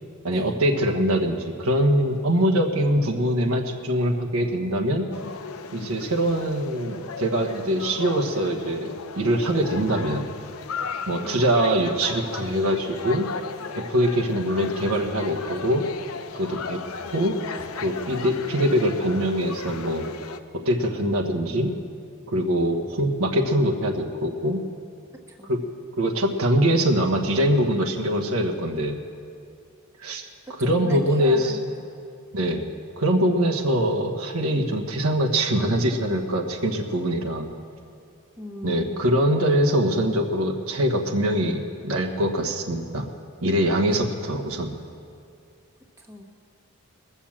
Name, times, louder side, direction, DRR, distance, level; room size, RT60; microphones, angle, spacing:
voice 1, 0.2-5.0 5.7-10.3 11.1-13.3 13.7-15.8 16.3-16.8 17.1-17.3 17.8-20.1 20.5-21.7 22.3-24.6 25.5-25.6 26.0-29.0 30.0-30.2 30.6-31.6 32.3-32.7 33.0-37.5 38.6-43.1 43.4-44.8, equal, 85° right, 1 dB, 1.3 m, -23 dB
sound 1, 5.1-20.4, left 5 dB, 85° left, 0.7 m, -36 dB
voice 2, 30.5-31.6 38.4-39.3 43.8-44.1 46.0-46.4, equal, 15° right, 0 dB, 1.2 m, -38 dB
21.0 x 7.1 x 7.3 m, 2.5 s
head